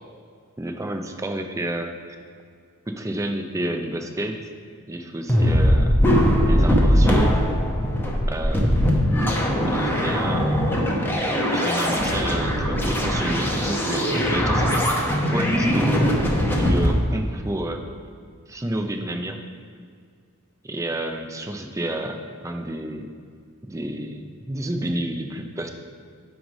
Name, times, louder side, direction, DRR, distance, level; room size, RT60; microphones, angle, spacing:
voice 1, 0.6-2.2 2.9-4.4 4.9-6.0 6.4-7.3 8.3-9.1 9.6-10.8 11.5-14.9 15.3-15.9 16.5-17.8 18.5-19.4 20.6-23.1 23.6-25.7, right 1 dB, 15° right, 5 dB, 0.5 m, -30 dB
sound 1, 5.3-16.9, equal, 10° left, 0.8 m, -20 dB
9.1 x 3.2 x 6.2 m, 2.2 s
head